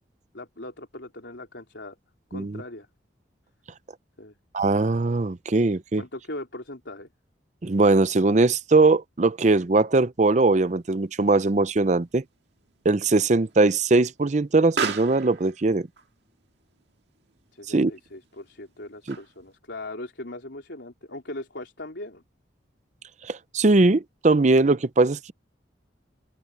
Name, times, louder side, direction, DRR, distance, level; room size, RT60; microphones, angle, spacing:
voice 1, 0.3-2.0 2.3-2.9 4.2-4.4 6.0-7.1 17.5-22.2, left 1 dB, 75° left, 3.5 m, -39 dB
voice 2, 4.5-6.0 7.6-12.2 12.8-15.9 17.7-17.9 19.1-19.2 23.3-25.3, right 3 dB, 40° right, 0.6 m, -20 dB
Explosion, 10.6-19.6, right 5 dB, 70° right, 1.8 m, -39 dB
open air
head